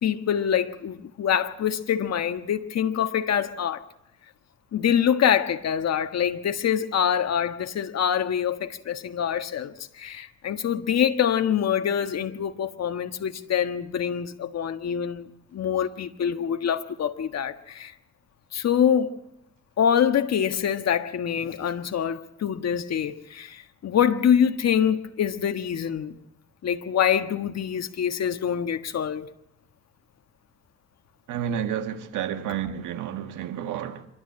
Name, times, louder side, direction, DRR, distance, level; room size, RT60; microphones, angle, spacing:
voice 1, 0.0-3.8 4.7-17.9 18.5-19.2 19.8-26.2 26.6-29.3, left 8 dB, 60° left, 1.5 m, -25 dB
voice 2, 31.3-34.1, right 9 dB, 85° right, 1.8 m, -30 dB
26.0 x 12.5 x 8.7 m
cardioid pair, 90°, 30 cm